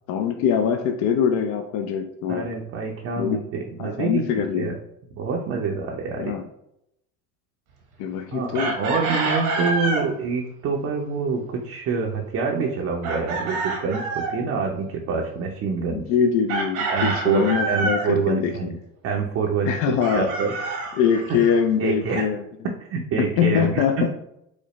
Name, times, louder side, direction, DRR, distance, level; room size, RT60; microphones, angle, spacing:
voice 1, 0.1-2.5 3.2-3.4 3.8-4.8 6.2-6.4 8.0-8.7 15.9-18.6 19.7-20.3 21.0-22.4 23.2-24.1, left 7 dB, 45° left, 5 dB, 0.4 m, -23 dB
voice 2, 2.3-4.8 5.2-6.4 8.3-16.0 16.9-18.8 19.0-19.8 20.1-20.5 21.3-21.4 21.8-22.3 22.6-24.1, right 5 dB, 35° right, 0 dB, 0.6 m, -26 dB
Chicken rooster, 8.5-10.1 13.0-14.4 16.5-18.1 20.0-21.6, right 3 dB, 80° right, 1.2 m, -27 dB
4.9 x 2.1 x 3.0 m, 0.79 s
hypercardioid pair, 90°, 42 cm